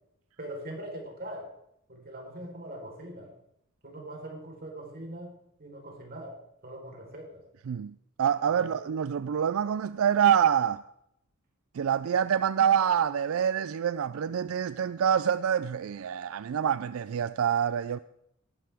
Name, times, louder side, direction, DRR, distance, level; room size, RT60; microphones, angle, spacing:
voice 1, 0.4-1.5 1.9-3.3 3.8-5.3 5.6-6.4 6.6-7.4 8.5-8.9, right 1 dB, 45° right, 4.0 m, -41 dB
voice 2, 7.7-10.8 11.7-18.0, right 8 dB, 85° right, 0.4 m, -26 dB
18.5 x 11.5 x 3.5 m
head